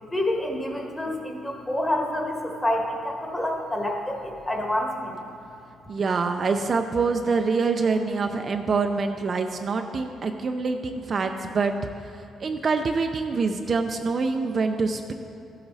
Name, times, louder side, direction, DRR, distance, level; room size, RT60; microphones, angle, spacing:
voice 1, 0.1-5.1, left 1 dB, 15° left, 0 dB, 1.5 m, -28 dB
voice 2, 5.9-11.7 12.4-15.1, right 4 dB, 40° right, 5 dB, 0.5 m, -25 dB
14.5 x 8.0 x 4.0 m, 2.6 s
cardioid pair, 125°, 0 cm